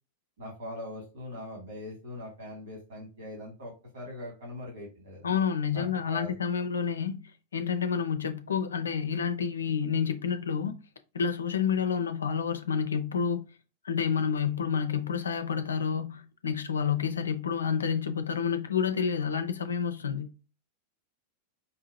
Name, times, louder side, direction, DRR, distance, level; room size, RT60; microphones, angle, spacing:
voice 1, 0.4-5.3 5.7-6.3, left 1 dB, 65° right, 2.0 m, -41 dB
voice 2, 5.2-7.2 7.5-10.7 11.1-13.4 13.8-20.3, left 7 dB, 70° left, 0.5 m, -29 dB
5.4 x 2.8 x 2.6 m
figure-of-eight pair, 90°, 0 cm